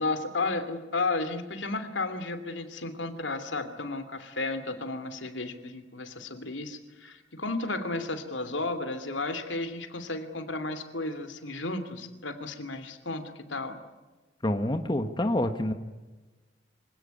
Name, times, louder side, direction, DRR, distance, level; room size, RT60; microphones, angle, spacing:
voice 1, 0.0-13.8, left 3 dB, 75° left, 10 dB, 2.9 m, -33 dB
voice 2, 14.4-15.7, left 1 dB, 25° left, 7 dB, 1.4 m, -27 dB
25.5 x 17.5 x 9.6 m, 1.2 s
head